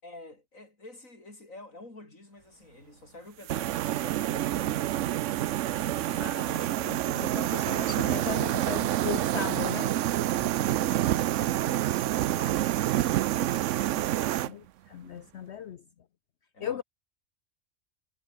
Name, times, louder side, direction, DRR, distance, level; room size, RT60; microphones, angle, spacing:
voice 1, 0.0-6.6 10.3-14.7 16.5-16.8, left 2 dB, 85° left, 6.1 m, -49 dB
sound 1, 3.5-14.5, right 13 dB, 75° right, 0.9 m, -28 dB
voice 2, 6.2-9.9 14.5-14.6 14.9-15.8 16.6-16.8, left 8 dB, 60° left, 1.0 m, -37 dB
omnidirectional pair, 1.4 m